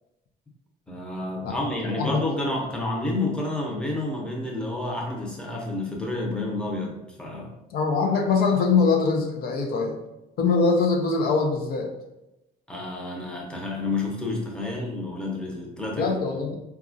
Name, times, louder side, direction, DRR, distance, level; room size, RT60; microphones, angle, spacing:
voice 1, 0.9-7.5 12.7-16.2, left 2 dB, 5° left, -1 dB, 0.7 m, -30 dB
voice 2, 7.7-10.0 10.4-11.9 16.0-16.6, left 4 dB, 65° left, 2 dB, 0.5 m, -23 dB
3.8 x 2.3 x 2.5 m, 0.93 s
cardioid pair, 110°, 17 cm